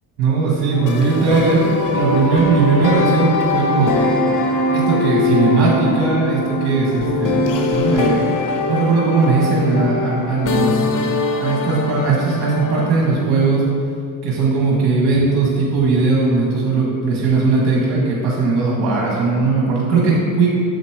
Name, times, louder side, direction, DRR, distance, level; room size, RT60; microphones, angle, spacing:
voice 1, 0.2-4.1 4.7-8.3 8.7-10.9 11.4-13.6 14.2-20.5, right 3 dB, 65° right, -4 dB, 1.5 m, -18 dB
sound 1, 0.7-12.9, left 2 dB, 50° left, 0.9 m, -21 dB
6.9 x 5.1 x 4.6 m, 2.4 s
cardioid pair, 95°, 43 cm